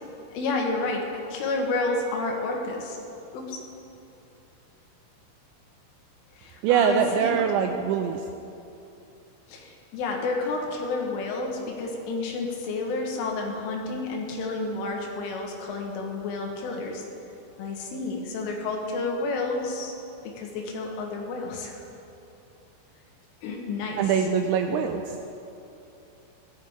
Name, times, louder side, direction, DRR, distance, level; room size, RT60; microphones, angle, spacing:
voice 1, 0.3-3.0 3.3-3.6 6.4-7.5 9.5-17.1 17.6-19.9 20.3-21.7 23.4-24.3, left 3 dB, 80° left, 1 dB, 3.8 m, -30 dB
voice 2, 6.6-8.2 24.0-25.2, right 7 dB, 85° right, 5 dB, 2.6 m, -23 dB
15.5 x 13.0 x 3.6 m, 2.8 s
omnidirectional pair, 5.7 m